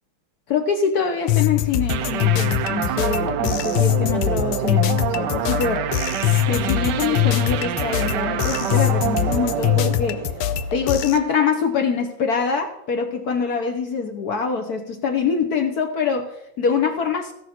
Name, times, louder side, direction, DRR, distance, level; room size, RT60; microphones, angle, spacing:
voice 1, 0.5-5.9 6.5-10.2 10.7-17.3, left 6 dB, 60° left, 4 dB, 1.1 m, -24 dB
sound 1, 1.3-11.2, left 13 dB, 80° left, 1.4 m, -23 dB
sound 2, 1.9-11.2, right 11 dB, 75° right, 1.0 m, -27 dB
15.5 x 6.2 x 4.3 m, 0.81 s
omnidirectional pair, 2.4 m